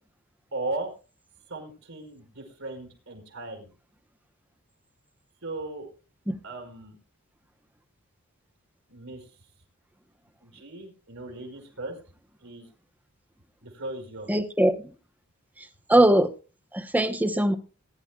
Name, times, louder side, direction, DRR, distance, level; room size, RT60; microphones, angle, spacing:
voice 1, 0.5-0.9 1.5-3.7 5.4-5.9 6.4-7.0 8.9-9.3 10.4-12.0 12.4-12.7 13.6-14.3, right 2 dB, 70° right, 1 dB, 4.5 m, -37 dB
voice 2, 14.3-14.7 15.9-16.3 16.7-17.5, right 1 dB, 10° right, 9 dB, 0.9 m, -20 dB
21.0 x 10.5 x 2.4 m, 0.33 s
head